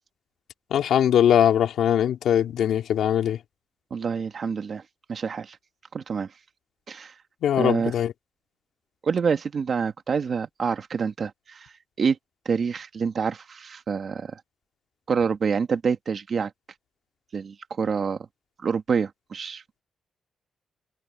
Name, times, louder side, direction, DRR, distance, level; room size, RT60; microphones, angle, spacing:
voice 1, 0.7-3.4 7.4-8.1, left 10 dB, 85° left, 2.7 m, -21 dB
voice 2, 3.9-4.8 5.1-5.6 5.9-6.3 6.9-7.1 7.6-7.9 9.0-11.7 12.0-12.2 12.5-14.3 15.1-16.5 17.3-18.2 18.6-19.6, right 6 dB, 45° right, 1.8 m, -27 dB
wide cardioid pair, 145°, 0 cm